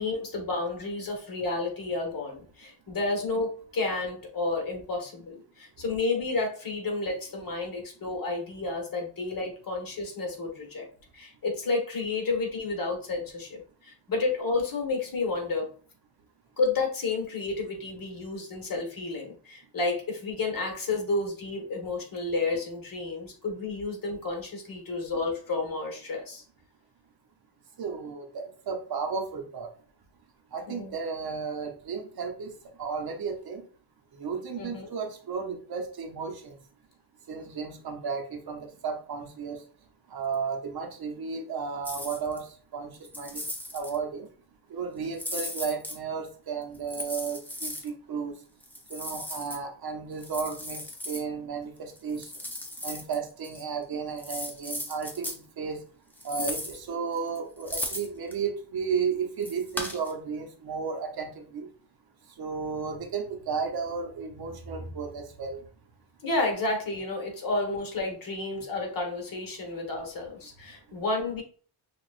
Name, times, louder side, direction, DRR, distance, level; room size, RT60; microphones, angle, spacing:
voice 1, 0.0-10.9 11.1-15.8 16.6-26.4 30.7-30.9 34.6-34.9 66.2-71.4, left 3 dB, 45° left, 1 dB, 1.4 m, -31 dB
voice 2, 27.8-29.7 30.5-32.5 32.8-33.6 34.2-36.5 37.3-39.6 40.1-42.4 42.7-42.9 43.2-43.4 43.7-44.3 44.7-48.3 48.9-52.2 52.8-55.8 56.2-61.7 62.4-65.6, right 5 dB, 55° right, 4 dB, 0.8 m, -33 dB
sound 1, 41.8-42.4 42.9-44.0 45.1-46.0 46.7-47.9 48.6-49.6 50.2-51.2 51.9-53.2 53.4-53.6 54.2-55.4 56.2-56.8 57.2-58.3 59.4-60.1, left 1 dB, 5° left, 0.6 m, -36 dB
6.0 x 2.4 x 2.4 m, 0.43 s
wide cardioid pair, 135°, 46 cm